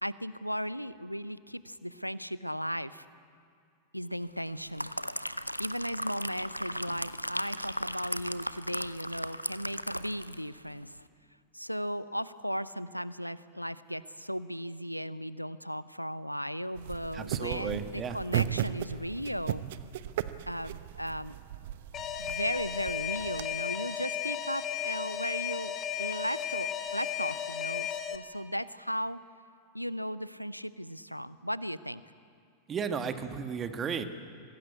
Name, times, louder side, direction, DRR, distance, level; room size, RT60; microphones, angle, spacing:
voice 1, 0.0-3.0 3.9-4.9 5.4-11.0 11.5-19.6 20.5-21.4 22.2-29.2 29.7-32.0, equal, 90° left, 17 dB, 0.7 m, -36 dB
sound 1, 4.4-10.5 10.8-11.0, equal, 90° right, 0.6 m, -37 dB
sound 2, 16.8-23.4, right 11 dB, 55° right, 0.9 m, -36 dB
voice 2, 17.1-18.2 32.7-34.0, right 6 dB, 25° right, 7 dB, 1.9 m, -34 dB
Alarm, 21.9-28.2, left 9 dB, 30° left, 1.6 m, -34 dB
25.5 x 19.0 x 8.5 m, 2.3 s
figure-of-eight pair, 90°, 0 cm